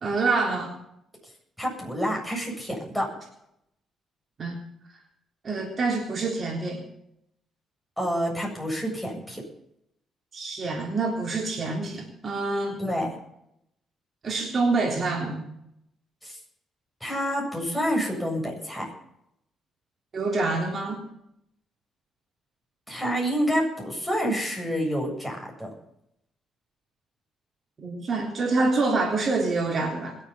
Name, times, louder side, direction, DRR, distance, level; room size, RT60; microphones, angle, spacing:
voice 1, 0.0-0.7 4.4-4.6 5.4-6.8 10.3-12.8 14.2-15.5 20.1-21.1 27.8-30.2, right 3 dB, 45° right, 0 dB, 3.7 m, -26 dB
voice 2, 1.6-3.1 8.0-9.4 12.8-13.1 16.2-16.4 17.0-18.9 22.9-25.7, equal, 5° left, -1 dB, 7.8 m, -28 dB
21.5 x 8.1 x 7.3 m, 0.77 s
cardioid pair, 90°, 0 cm